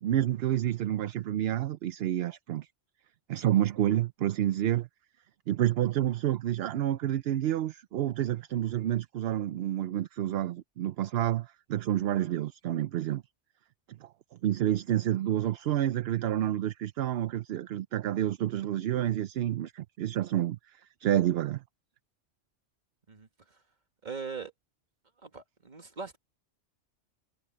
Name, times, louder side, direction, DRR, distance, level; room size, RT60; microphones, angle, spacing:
voice 1, 0.0-2.7 3.3-4.9 5.5-13.2 14.0-14.1 14.4-21.6, right 12 dB, 65° right, 0.8 m, -29 dB
voice 2, 23.1-23.6 24.0-24.5 25.2-26.2, right 5 dB, 40° right, 1.9 m, -41 dB
omnidirectional pair, 1.2 m